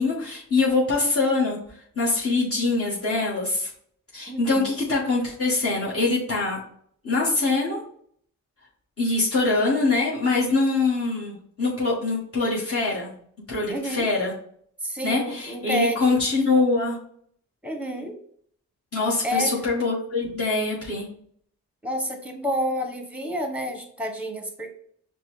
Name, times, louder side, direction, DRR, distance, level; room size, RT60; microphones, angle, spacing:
voice 1, 0.0-3.7 4.1-6.6 7.0-7.8 9.0-13.2 13.5-14.3 15.0-17.0 18.9-21.1, left 3 dB, 45° left, -7 dB, 1.5 m, -24 dB
voice 2, 4.3-4.8 13.7-14.1 14.8-16.2 17.6-18.1 19.2-19.5 21.8-24.7, equal, 5° right, 4 dB, 1.0 m, -29 dB
5.3 x 2.2 x 3.2 m, 0.62 s
cardioid pair, 65°, 33 cm